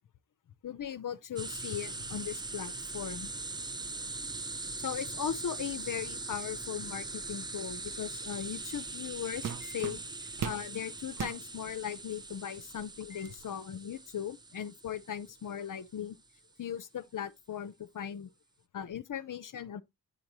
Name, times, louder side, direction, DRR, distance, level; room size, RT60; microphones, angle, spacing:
voice 1, 0.6-3.3 4.8-10.0 10.4-16.2 16.6-18.3 18.7-19.8, left 9 dB, 55° left, 0.5 m, -38 dB
sound 1, 1.4-15.9, right 3 dB, 10° right, 0.3 m, -41 dB
sound 2, 8.7-8.9 9.4-10.7 11.1-11.4 12.1-12.2 12.7-13.4, right 8 dB, 55° right, 0.6 m, -38 dB
8.6 x 5.2 x 2.9 m
cardioid pair, 65°, 39 cm